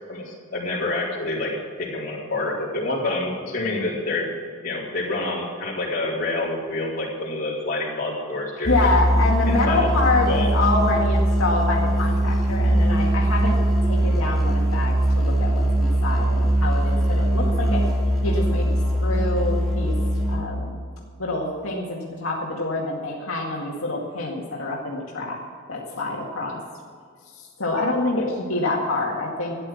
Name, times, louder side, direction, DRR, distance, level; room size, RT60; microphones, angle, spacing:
voice 1, 0.1-4.3 4.6-8.7 9.4-9.9 10.3-10.5 27.8-28.3, left 2 dB, 40° left, -5 dB, 4.0 m, -28 dB
Musical instrument, 8.6-20.7, right 1 dB, ahead, 2.6 m, -21 dB
voice 2, 8.7-13.6 13.8-17.8 18.2-18.7 19.0-20.0 20.3-20.8 21.2-25.4 25.7-26.6 27.4-29.6, left 2 dB, 80° left, -3 dB, 2.1 m, -26 dB
13.5 x 10.0 x 6.3 m, 2.1 s
head